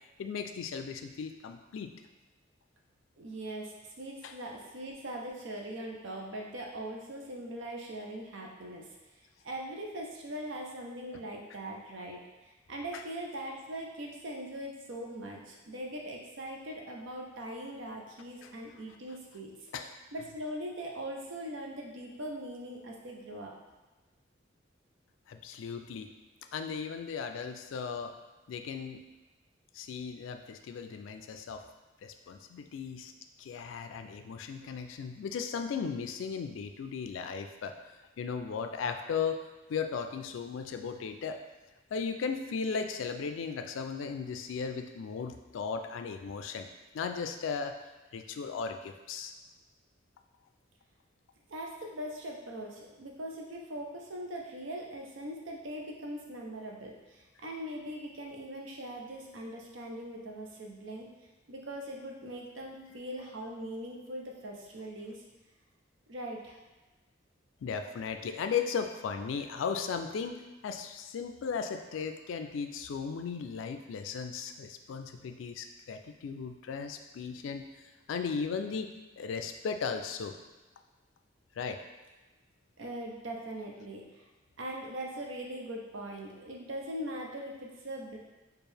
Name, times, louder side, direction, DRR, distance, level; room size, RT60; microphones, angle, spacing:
voice 1, 0.2-1.9 4.2-4.3 12.9-13.0 19.7-19.9 25.3-26.1 26.5-28.1 28.5-29.0 29.7-31.6 32.0-33.1 33.4-37.7 38.2-39.4 39.7-41.4 41.9-46.7 46.9-47.8 48.1-49.3 67.6-77.6 78.1-78.9 79.2-80.4 81.6-81.8, left 6 dB, 80° left, 7 dB, 0.3 m, -36 dB
voice 2, 3.2-8.9 9.4-19.7 20.1-23.5 51.5-61.1 61.5-65.2 66.1-66.6 82.8-84.3 84.6-88.2, right 1 dB, 80° right, 0 dB, 0.7 m, -41 dB
4.4 x 2.4 x 3.3 m, 1.2 s
head